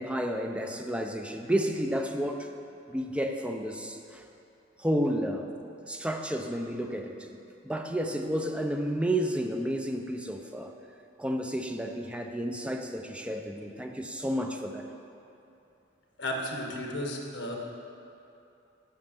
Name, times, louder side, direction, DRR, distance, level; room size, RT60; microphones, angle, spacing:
voice 1, 0.0-2.5 2.9-4.2 4.8-5.6 5.9-7.2 7.6-10.7 11.2-14.8, equal, 5° right, 4 dB, 0.5 m, -31 dB
voice 2, 16.2-17.6, left 1 dB, 70° left, 1 dB, 1.5 m, -33 dB
10.5 x 6.5 x 5.7 m, 2.8 s
head